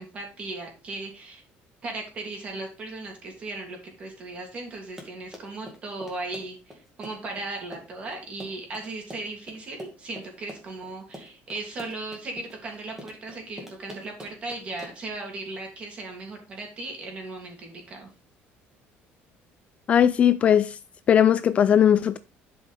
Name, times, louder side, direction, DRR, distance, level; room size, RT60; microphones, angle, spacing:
voice 1, 0.0-1.4 1.8-18.1, right 2 dB, 30° right, 2.7 m, -37 dB
Run, 4.7-15.2, equal, 10° right, 1.9 m, -45 dB
voice 2, 19.9-20.8 21.1-22.2, left 9 dB, 30° left, 0.3 m, -18 dB
11.5 x 5.3 x 3.4 m
cardioid pair, 180°, 4 cm